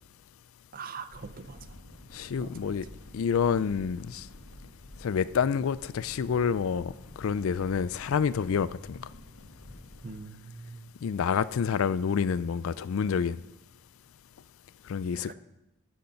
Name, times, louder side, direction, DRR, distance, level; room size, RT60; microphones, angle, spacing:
voice 1, 0.7-1.7 2.4-2.8 10.0-10.9 15.3-15.4, right 4 dB, 40° right, 11 dB, 0.6 m, -42 dB
sound 1, 1.1-10.2, left 1 dB, 85° left, 1.4 m, -49 dB
voice 2, 2.1-2.9 3.1-4.3 5.0-6.9 7.2-9.0 11.0-13.4 14.9-15.3, left 6 dB, 65° left, 17 dB, 0.4 m, -28 dB
12.0 x 6.4 x 5.7 m, 0.88 s
head